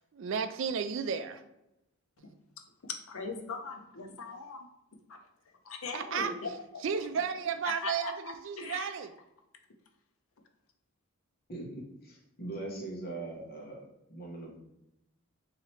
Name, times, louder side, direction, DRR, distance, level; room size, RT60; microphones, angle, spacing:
voice 1, 0.1-1.4 2.2-2.3 5.9-6.3 6.8-9.1, right 6 dB, 60° right, 8 dB, 0.4 m, -33 dB
voice 2, 3.1-4.7 5.1-5.2 5.6-6.8 7.1-7.3 7.6-8.9, left 3 dB, 75° left, 4 dB, 0.6 m, -40 dB
voice 3, 12.0-14.6, right 2 dB, 45° left, -2 dB, 1.0 m, -41 dB
3.0 x 2.8 x 4.3 m, 0.86 s
head